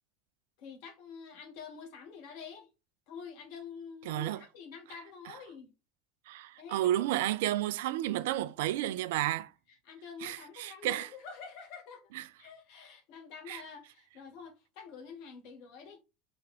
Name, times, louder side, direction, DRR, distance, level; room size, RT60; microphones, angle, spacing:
voice 1, 0.6-2.7 3.1-5.7 6.6-7.2 9.8-12.1 12.4-16.0, left 6 dB, 60° left, 1.4 m, -47 dB
voice 2, 4.0-4.4 5.3-5.4 6.3-9.5 10.2-11.1 12.1-12.2 13.5-13.6, right 14 dB, 70° right, 0.3 m, -32 dB
4.5 x 3.4 x 3.5 m
hypercardioid pair, 75°, 0 cm